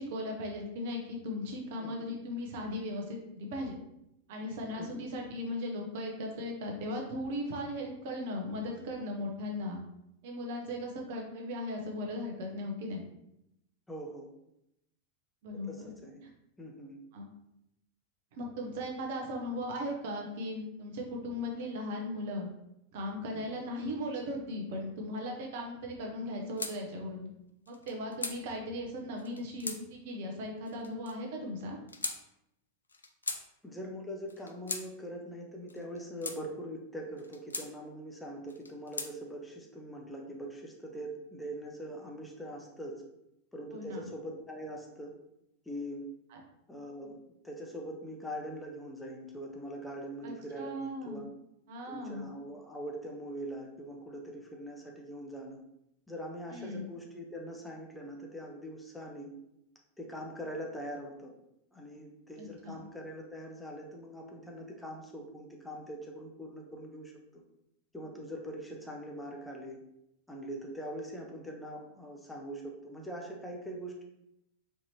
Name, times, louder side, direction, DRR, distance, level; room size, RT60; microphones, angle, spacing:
voice 1, 0.0-3.8 4.3-9.8 10.2-13.0 15.4-15.9 17.1-17.3 18.3-22.5 22.9-27.3 27.7-31.8 43.7-44.1 46.3-46.4 50.2-51.2 51.7-52.3 56.5-56.8 62.4-62.8, left 1 dB, 50° right, 0 dB, 0.8 m, -37 dB
voice 2, 1.8-2.1 4.8-5.1 13.9-14.3 15.7-16.2 16.6-16.9 23.4-23.5 33.6-43.0 43.5-45.1 45.7-46.1 46.7-47.2 47.4-51.3 51.8-55.6 56.1-59.3 60.0-61.3 61.7-67.4 67.9-69.8 70.3-74.0, equal, 5° left, 0 dB, 0.8 m, -42 dB
sound 1, 26.6-26.8 27.7-28.4 29.2-29.8 30.7-31.1 31.9-32.2 32.9-33.4 34.3-34.9 35.7-36.4 37.2-37.7 38.5-39.1, left 3 dB, 75° left, 0.3 m, -38 dB
4.5 x 2.9 x 2.8 m, 0.82 s
figure-of-eight pair, 90°, 0 cm